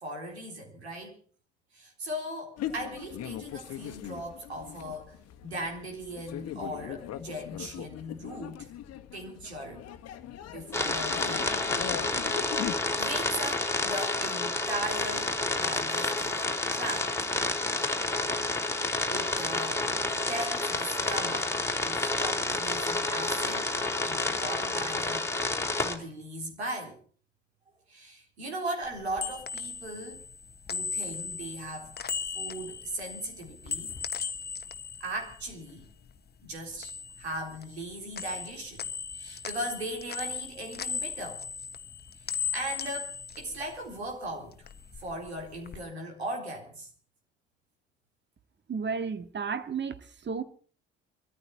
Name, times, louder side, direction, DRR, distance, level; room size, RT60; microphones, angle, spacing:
voice 1, 0.0-1.2 1.7-5.2 5.4-8.7 9.1-9.8 10.5-11.5 13.0-16.4 16.7-17.5 19.1-19.9 20.3-23.7 24.0-25.3 25.8-27.0 27.9-30.2 30.7-34.0 35.0-35.8 36.4-38.8 39.1-41.5 42.3-44.7 45.0-46.9, right 1 dB, 85° right, 4.1 m, -38 dB
sound 1, 2.6-12.7, left 11 dB, 55° left, 1.5 m, -40 dB
sound 2, 10.7-26.0, left 2 dB, 10° left, 4.0 m, -29 dB
sound 3, 28.9-36.2 36.5-37.9 38.1-44.1 44.5-45.8, left 6 dB, 30° left, 1.3 m, -38 dB
voice 2, 48.7-50.4, right 5 dB, 35° right, 1.9 m, -33 dB
23.0 x 14.0 x 4.3 m
figure-of-eight pair, 50°, 31 cm